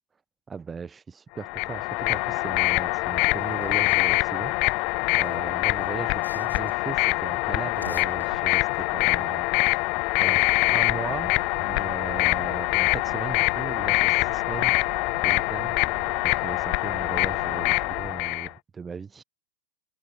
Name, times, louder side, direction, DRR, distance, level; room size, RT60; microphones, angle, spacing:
voice 1, 0.5-4.6 5.2-9.8 10.2-10.4 10.7-14.7 15.2-15.8 16.2-19.2, right 5 dB, 15° right, 1.0 m, -37 dB
sound 1, 1.4-18.5, left 30 dB, 45° left, 0.6 m, -24 dB
sound 2, 3.2-4.2 5.1-6.9 7.6-8.9, left 2 dB, 85° left, 2.9 m, -48 dB
sound 3, 10.4-18.1, right 23 dB, 40° right, 0.7 m, -44 dB
figure-of-eight pair, 90°, 0 cm